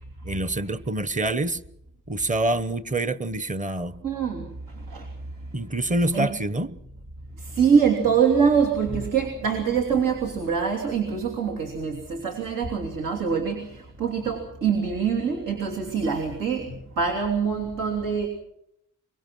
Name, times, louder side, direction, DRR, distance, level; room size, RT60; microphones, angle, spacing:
voice 1, 0.2-1.6 2.1-4.0 5.5-6.8, right 2 dB, 25° right, 16 dB, 1.0 m, -26 dB
voice 2, 4.0-4.5 4.7-5.1 6.1-6.3 7.4-18.3, right 6 dB, 85° right, 2 dB, 3.2 m, -24 dB
24.0 x 22.5 x 6.2 m, 0.78 s
cardioid pair, 100°, 32 cm